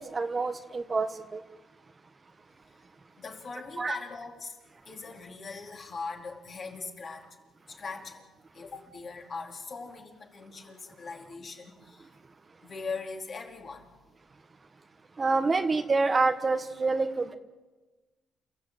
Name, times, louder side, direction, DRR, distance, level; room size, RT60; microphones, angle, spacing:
voice 1, 0.0-1.4 3.8-4.0 15.2-17.4, right 3 dB, 30° right, 8 dB, 1.4 m, -27 dB
voice 2, 3.2-4.6 4.9-7.4 7.7-12.1 12.6-13.9, left 4 dB, 45° left, 1 dB, 4.3 m, -40 dB
29.0 x 14.5 x 9.3 m, 1.2 s
cardioid pair, 90°, 0 cm